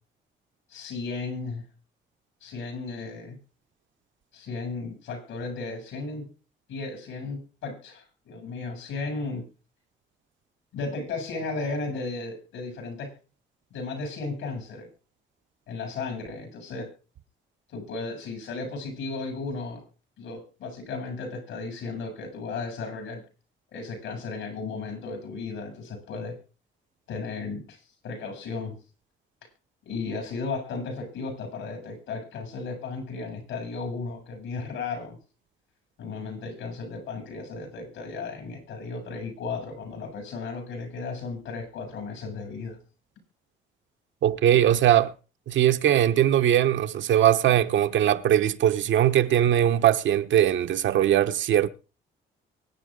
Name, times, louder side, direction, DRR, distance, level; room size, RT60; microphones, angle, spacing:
voice 1, 0.7-1.6 2.4-3.4 4.3-6.3 6.7-9.4 10.7-13.1 13.7-14.9 15.7-16.9 17.7-19.8 20.2-23.2 23.7-26.4 27.1-28.7 29.8-35.2 36.0-42.8, left 4 dB, 85° left, 7.8 m, -35 dB
voice 2, 44.2-45.1 45.5-51.7, right 11 dB, 70° right, 1.0 m, -21 dB
23.5 x 9.3 x 3.8 m
cardioid pair, 90°, 20 cm